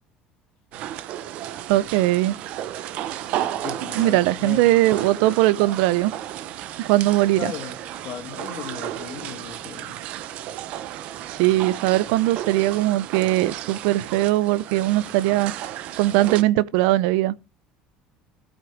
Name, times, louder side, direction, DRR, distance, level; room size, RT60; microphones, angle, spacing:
sound 1, 0.7-16.4, right 12 dB, 55° right, 0.9 m, -33 dB
voice 1, 1.7-2.4 3.9-6.1 6.9-7.5 11.3-15.5 16.0-17.3, right 16 dB, 85° right, 0.5 m, -20 dB
voice 2, 3.6-5.4 7.3-7.8 8.0-10.0, left 9 dB, 50° left, 2.6 m, -37 dB
13.0 x 8.0 x 4.9 m
cardioid pair, 160°, 3 cm